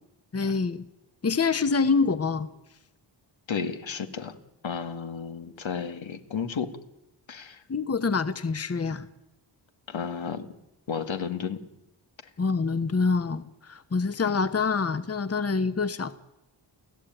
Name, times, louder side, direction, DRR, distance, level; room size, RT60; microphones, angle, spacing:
voice 1, 0.3-0.9 1.2-2.5 7.7-9.1 12.4-16.1, left 4 dB, 30° left, 12 dB, 1.1 m, -26 dB
voice 2, 3.5-4.4 4.6-6.7 7.3-7.6 9.9-10.5 10.9-11.6 14.2-14.4, left 6 dB, 80° left, 8 dB, 2.1 m, -33 dB
29.5 x 15.5 x 9.2 m, 0.93 s
wide cardioid pair, 105°, 46 cm